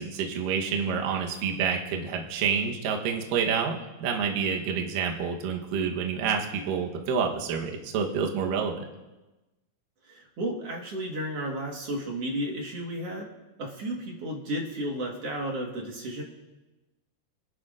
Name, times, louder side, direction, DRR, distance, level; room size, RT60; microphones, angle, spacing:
voice 1, 0.0-8.8, right 6 dB, 70° right, 1 dB, 2.5 m, -28 dB
voice 2, 10.1-13.3 13.6-16.2, right 1 dB, 55° right, 0 dB, 1.9 m, -33 dB
23.5 x 11.0 x 2.5 m, 1.1 s
omnidirectional pair, 4.5 m